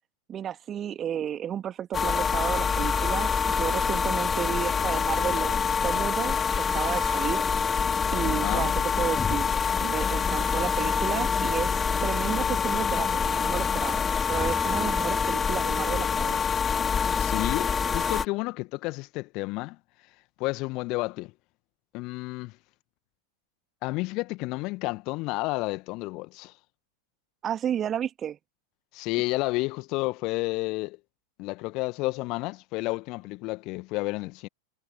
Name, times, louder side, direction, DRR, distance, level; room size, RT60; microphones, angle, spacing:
voice 1, 0.3-7.4 8.1-9.5 9.8-16.5 27.4-28.4, right 9 dB, 25° right, 2.5 m, -32 dB
sound 1, 1.9-18.2, left 6 dB, 20° left, 3.6 m, -26 dB
voice 2, 8.2-8.8 17.2-19.8 20.4-21.3 21.9-22.6 23.8-26.5 28.9-31.0 31.4-34.5, left 23 dB, 40° left, 1.7 m, -31 dB
figure-of-eight pair, 90°, 0 cm